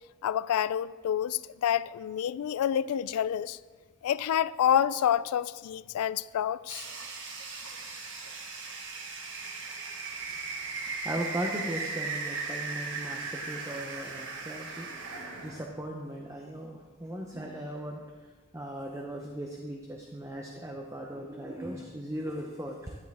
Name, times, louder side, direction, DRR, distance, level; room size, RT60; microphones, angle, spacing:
voice 1, 0.2-3.6 4.0-6.8, left 9 dB, 85° left, 0.3 m, -28 dB
sound 1, 6.7-15.7, right 4 dB, 55° right, 1.4 m, -37 dB
voice 2, 10.7-15.2 15.4-23.0, right 1 dB, 15° right, 0.7 m, -38 dB
10.5 x 10.0 x 3.5 m
head